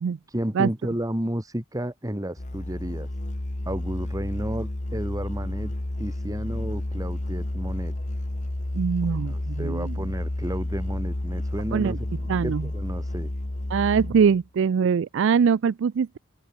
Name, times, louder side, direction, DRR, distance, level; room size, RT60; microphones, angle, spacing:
voice 1, 0.3-3.1 3.7-5.7 6.0-8.0 9.0-13.3, right 1 dB, 15° right, 2.2 m, -32 dB
Musical instrument, 2.4-14.4, left 1 dB, 35° left, 1.2 m, -31 dB
voice 2, 8.7-10.0 11.7-12.0 12.3-12.7 13.7-16.2, right 6 dB, 60° right, 0.4 m, -23 dB
open air
head